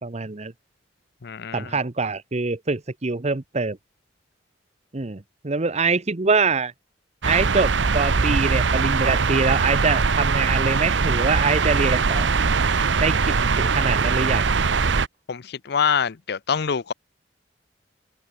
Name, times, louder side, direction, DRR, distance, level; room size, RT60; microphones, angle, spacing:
voice 1, 0.0-0.5 1.5-3.8 4.9-6.7 7.2-12.3 13.0-14.4, right 4 dB, 35° right, 0.9 m, -24 dB
voice 2, 1.2-1.8 15.3-16.9, left 6 dB, 60° left, 0.6 m, -25 dB
sound 1, 7.2-15.1, right 4 dB, 75° right, 0.8 m, -21 dB
open air
head